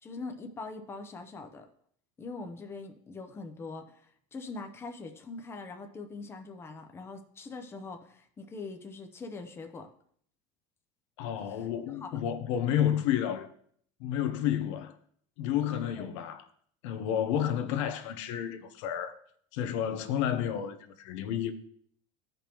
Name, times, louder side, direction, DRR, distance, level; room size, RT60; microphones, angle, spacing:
voice 1, 0.0-1.7 2.2-4.0 4.3-9.9 11.9-12.2 16.0-16.1, left 3 dB, 15° left, 0.7 m, -42 dB
voice 2, 11.2-13.5 14.0-14.9 15.4-16.4 16.8-19.1 19.5-21.5, left 10 dB, 80° left, 0.8 m, -30 dB
15.5 x 5.2 x 3.0 m
cardioid pair, 150°, 15 cm